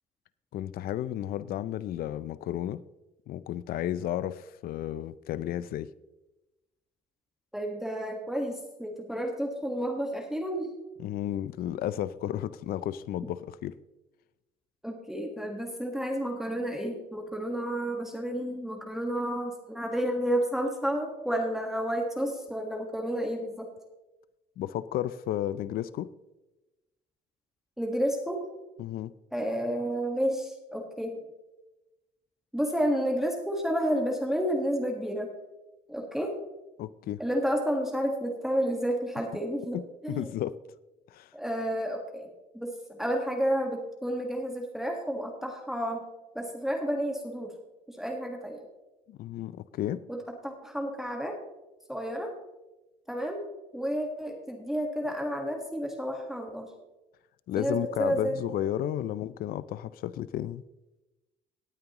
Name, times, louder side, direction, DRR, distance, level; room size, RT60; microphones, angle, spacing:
voice 1, 0.5-2.8 3.3-5.9 11.0-13.7 24.6-26.1 28.8-29.1 36.8-37.2 39.7-40.6 41.1-41.3 49.1-50.0 57.5-60.6, left 12 dB, 60° left, 16 dB, 0.5 m, -33 dB
voice 2, 7.5-10.8 14.8-23.7 27.8-28.5 29.3-31.2 32.5-35.3 35.9-36.3 37.2-40.3 41.3-42.3 42.5-46.0 46.3-47.5 47.9-48.6 50.1-51.4 51.9-52.3 53.1-53.4 53.7-56.7 57.6-58.4, equal, ahead, 1 dB, 1.6 m, -31 dB
18.0 x 9.1 x 3.0 m, 1.0 s
cardioid pair, 110°, 17 cm